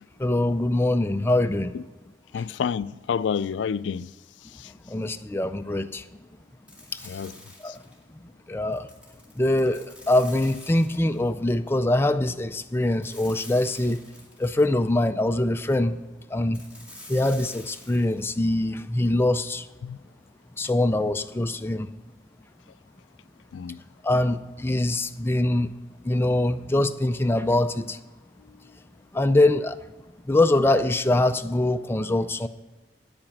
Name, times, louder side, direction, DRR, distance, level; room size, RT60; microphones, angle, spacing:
voice 1, 0.2-1.7 4.9-6.0 7.6-7.7 8.5-8.9 9.4-14.0 14.4-16.0 16.3-16.6 17.1-19.6 20.6-21.9 24.0-25.7 26.0-28.0 29.1-29.8 30.3-32.5, left 1 dB, 15° left, 0.4 m, -23 dB
voice 2, 2.3-4.1 7.0-7.3 19.8-20.0 23.5-23.8, left 7 dB, 85° left, 0.3 m, -28 dB
sound 1, 6.7-8.0 8.7-11.3 13.0-14.7 16.5-18.2, left 1 dB, 5° right, 2.1 m, -47 dB
9.8 x 8.8 x 6.0 m
head